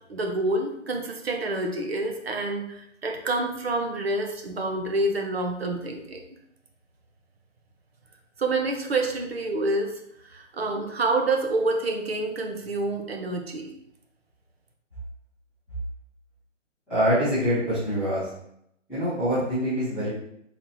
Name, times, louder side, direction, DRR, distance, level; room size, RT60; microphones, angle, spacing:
voice 1, 0.1-6.2 8.4-13.7, right 2 dB, 55° right, 2 dB, 0.7 m, -28 dB
voice 2, 16.9-18.3 18.9-20.1, equal, ahead, -19 dB, 0.6 m, -24 dB
4.1 x 3.0 x 2.7 m, 0.76 s
figure-of-eight pair, 155°, 38 cm